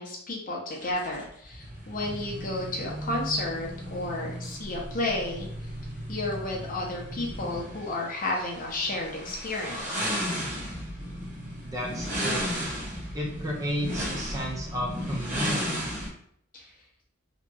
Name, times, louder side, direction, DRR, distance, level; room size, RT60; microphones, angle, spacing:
voice 1, 0.0-5.5 6.1-10.1 16.5-16.7, left 2 dB, 40° left, -2 dB, 0.6 m, -32 dB
sound 1, 0.7-16.1, equal, 35° right, 0.9 m, -35 dB
voice 2, 11.6-12.5 13.1-15.8, equal, 15° right, -2 dB, 0.4 m, -32 dB
2.8 x 2.7 x 2.3 m, 0.68 s
head